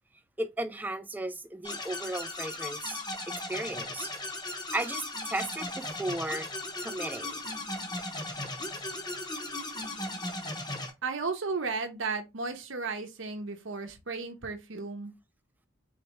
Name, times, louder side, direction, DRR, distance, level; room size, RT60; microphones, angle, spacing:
voice 1, 0.4-4.1 4.4-6.5 6.8-7.4, right 1 dB, 10° right, 0.3 m, -35 dB
sound 1, 1.6-10.9, left 2 dB, 20° left, 0.8 m, -37 dB
voice 2, 11.0-15.1, right 4 dB, 75° right, 0.8 m, -34 dB
4.3 x 3.2 x 3.0 m
head